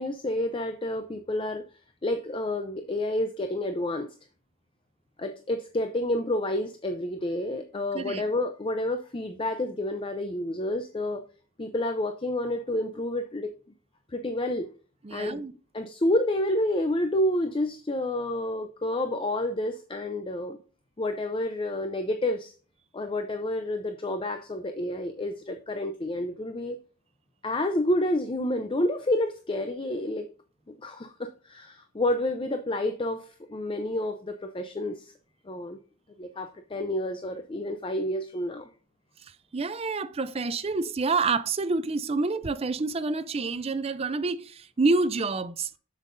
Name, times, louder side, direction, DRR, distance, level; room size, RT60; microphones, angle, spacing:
voice 1, 0.0-1.6 2.0-4.1 5.2-11.2 11.6-13.5 14.1-14.7 15.1-15.4 15.7-20.6 21.0-22.5 22.9-26.8 27.4-30.3 30.8-35.1 35.4-35.8 36.2-38.7, left 1 dB, 25° left, 0.5 m, -29 dB
voice 2, 15.0-15.5 39.5-45.7, right 3 dB, 30° right, 0.5 m, -28 dB
7.4 x 7.3 x 2.6 m
head